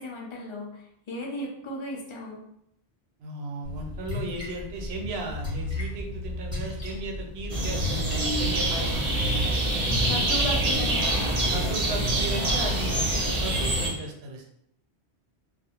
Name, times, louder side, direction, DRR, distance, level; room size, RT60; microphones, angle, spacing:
voice 1, 0.0-2.4 9.9-11.3, left 1 dB, 45° left, -1 dB, 0.4 m, -36 dB
voice 2, 3.2-9.2 10.0-10.3 11.1-11.2 11.5-14.5, right 2 dB, 75° right, 1 dB, 0.8 m, -36 dB
Splash splatter, 3.6-8.9, left 2 dB, 5° right, 0.9 m, -35 dB
sound 1, 7.5-13.9, right 1 dB, 40° right, 0.7 m, -25 dB
2.4 x 2.0 x 2.8 m, 0.75 s
omnidirectional pair, 1.1 m